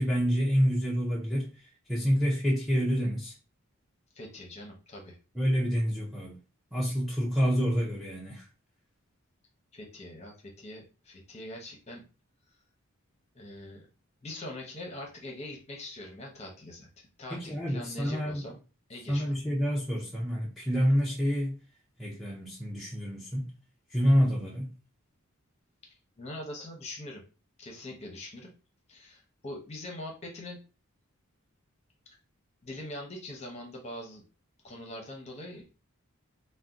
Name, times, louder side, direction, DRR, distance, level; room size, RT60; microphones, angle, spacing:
voice 1, 0.0-1.5 1.9-3.3 5.4-6.4 6.7-8.4 17.3-18.4 19.1-21.6 22.0-23.5 23.9-24.7, equal, ahead, 0.5 m, -27 dB
voice 2, 4.1-5.2 9.7-12.0 13.3-13.9 14.2-18.6 18.9-19.4 26.2-27.2 27.6-28.5 28.9-30.6 32.6-34.2 34.6-35.6, left 1 dB, 30° left, 0.8 m, -43 dB
2.7 x 2.2 x 3.5 m
head